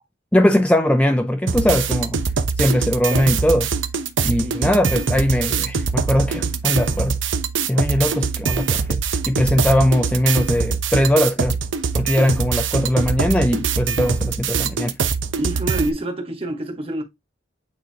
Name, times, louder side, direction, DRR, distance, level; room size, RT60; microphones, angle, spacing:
voice 1, 0.3-2.2 2.6-3.7 4.2-7.2 7.6-9.0 9.3-11.6 11.9-15.0, left 1 dB, 5° left, 0.4 m, -20 dB
sound 1, 1.5-15.9, right 5 dB, 90° right, 0.8 m, -23 dB
voice 2, 4.3-4.7 15.4-17.0, right 1 dB, 30° right, 1.5 m, -27 dB
8.9 x 3.9 x 2.8 m
head